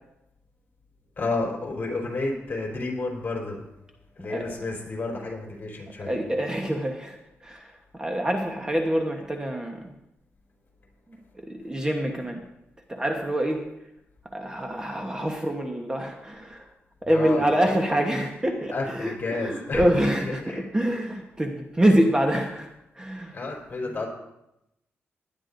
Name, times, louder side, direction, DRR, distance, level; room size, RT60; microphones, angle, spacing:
voice 1, 1.2-3.6 4.2-6.2 17.1-17.5 18.7-20.6 23.3-24.1, left 3 dB, 40° left, -1 dB, 4.1 m, -31 dB
voice 2, 6.0-9.9 11.4-12.4 12.9-13.6 14.3-16.7 17.0-22.7 23.0-23.4, right 1 dB, 15° right, 2 dB, 1.1 m, -26 dB
18.0 x 11.0 x 2.6 m, 0.86 s
cardioid pair, 100°, 5 cm